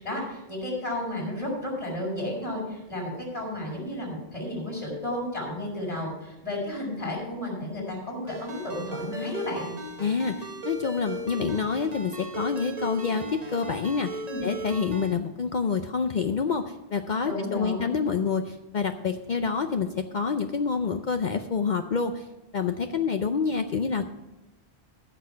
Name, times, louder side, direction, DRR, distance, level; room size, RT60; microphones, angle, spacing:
voice 1, 0.0-9.7 14.3-14.4 17.2-17.9, left 1 dB, 25° left, -9 dB, 4.6 m, -32 dB
Ringtone, 8.3-15.1, right 1 dB, 40° right, 1.3 m, -37 dB
voice 2, 10.0-22.3 22.5-24.1, left 5 dB, 55° left, 7 dB, 0.6 m, -27 dB
14.5 x 6.3 x 5.7 m, 1.0 s
omnidirectional pair, 1.1 m